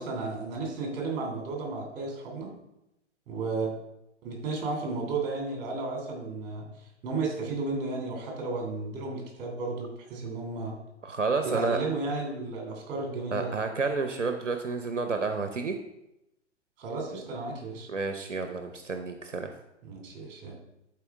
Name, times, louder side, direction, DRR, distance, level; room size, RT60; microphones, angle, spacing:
voice 1, 0.0-2.5 3.3-3.7 4.2-6.7 7.0-10.7 11.4-13.5 16.8-17.9 19.8-20.5, right 3 dB, 25° right, 0 dB, 2.7 m, -33 dB
voice 2, 11.0-11.8 13.3-15.8 17.9-19.5, right 4 dB, 80° right, 7 dB, 0.8 m, -30 dB
11.0 x 4.5 x 3.5 m, 0.87 s
figure-of-eight pair, 115°, 36 cm